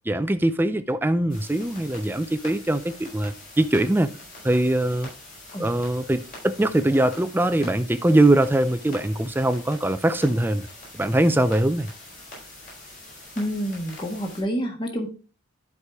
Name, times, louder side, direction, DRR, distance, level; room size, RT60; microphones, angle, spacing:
voice 1, 0.1-4.1 4.4-5.1 5.6-10.7 10.9-11.9, right 1 dB, 10° right, 0.4 m, -22 dB
sound 1, 1.3-14.4, left 1 dB, 40° left, 4.2 m, -44 dB
voice 2, 13.3-15.1, equal, 25° left, 1.5 m, -28 dB
11.0 x 4.8 x 3.5 m
head